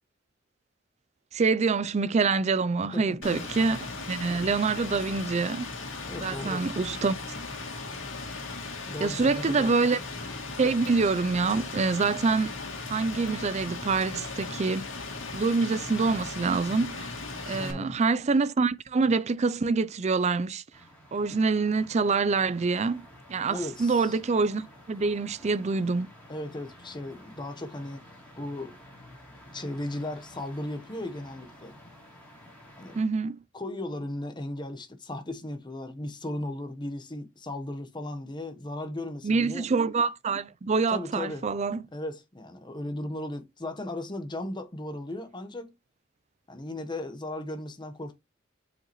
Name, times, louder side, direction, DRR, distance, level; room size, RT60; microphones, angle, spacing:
voice 1, 1.3-3.8 4.1-5.7 6.2-7.2 9.0-10.0 10.6-12.6 12.9-14.8 15.3-17.1 17.5-20.6 21.1-26.1 33.0-33.4 39.2-41.8, right 4 dB, 35° right, 0.4 m, -26 dB
voice 2, 2.9-3.4 6.0-6.7 8.9-9.7 17.4-18.0 23.5-24.2 26.3-28.0 28.4-28.8 29.5-31.8 32.8-33.0 33.5-39.7 40.9-41.5 41.9-45.7 46.5-48.2, left 1 dB, 25° left, 1.0 m, -36 dB
Rain, 3.2-17.7, left 3 dB, 85° left, 2.2 m, -37 dB
sound 1, 20.7-33.0, left 1 dB, 5° left, 3.6 m, -51 dB
7.6 x 5.0 x 3.0 m
head